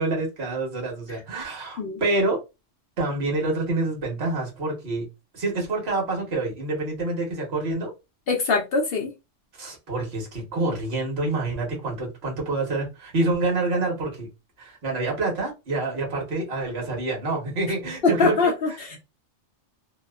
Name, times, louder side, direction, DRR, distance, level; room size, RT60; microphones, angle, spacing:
voice 1, 0.0-2.4 3.0-5.1 5.3-7.9 9.6-14.3 14.6-19.0, right 2 dB, 60° right, 1.3 m, -27 dB
voice 2, 8.3-9.1 18.0-18.7, left 4 dB, 60° left, 0.7 m, -22 dB
2.8 x 2.1 x 2.2 m
omnidirectional pair, 1.2 m